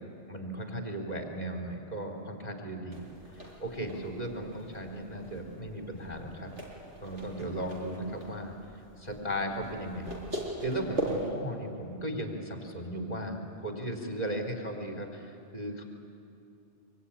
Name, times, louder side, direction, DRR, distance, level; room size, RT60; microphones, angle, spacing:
voice 1, 0.3-3.0 3.3-6.5 7.0-8.5 9.0-10.1 10.6-15.8, right 1 dB, 35° left, 4 dB, 3.7 m, -36 dB
sound 1, 2.9-11.3, right 1 dB, 85° right, 4.9 m, -41 dB
25.0 x 23.5 x 10.0 m, 2.6 s
omnidirectional pair, 1.2 m